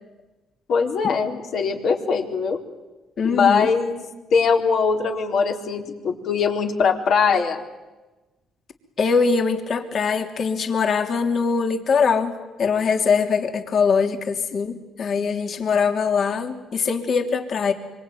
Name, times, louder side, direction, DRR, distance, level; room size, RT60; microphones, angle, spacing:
voice 1, 0.7-2.6 3.2-4.1 4.3-7.6, left 5 dB, 75° left, 2 dB, 4.2 m, -21 dB
voice 2, 3.2-3.7 9.0-12.3 12.6-17.7, left 5 dB, 55° left, 5 dB, 3.1 m, -22 dB
25.5 x 25.0 x 9.3 m, 1.1 s
cardioid pair, 90°, 0 cm